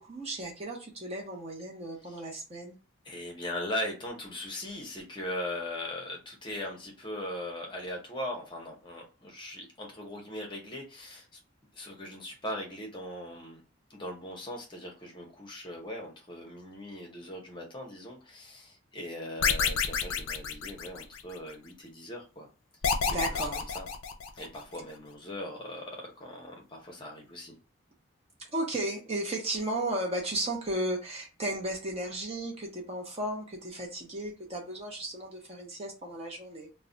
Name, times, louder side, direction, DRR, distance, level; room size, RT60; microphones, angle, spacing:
voice 1, 0.0-2.8 23.1-23.7 28.4-36.7, right 1 dB, 30° right, 0 dB, 0.6 m, -35 dB
voice 2, 3.0-11.3 11.7-13.6 13.9-22.5 22.8-23.9 24.3-27.5, left 1 dB, 25° left, 0 dB, 0.7 m, -39 dB
sound 1, 19.4-21.4 22.8-24.6, left 6 dB, 90° left, 0.4 m, -29 dB
2.3 x 2.1 x 3.7 m, 0.33 s
head